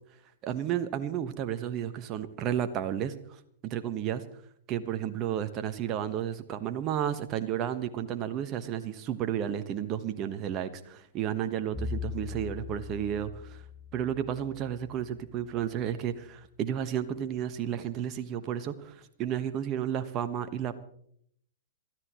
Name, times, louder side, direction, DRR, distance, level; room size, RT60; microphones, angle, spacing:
voice 1, 0.4-3.1 3.6-4.2 4.7-13.6 13.9-20.8, right 10 dB, 35° right, 9 dB, 1.3 m, -32 dB
Bowed string instrument, 11.7-15.9, left 6 dB, 10° left, 0.8 m, -41 dB
27.0 x 13.5 x 3.1 m, 0.67 s
hypercardioid pair, 110°, 0 cm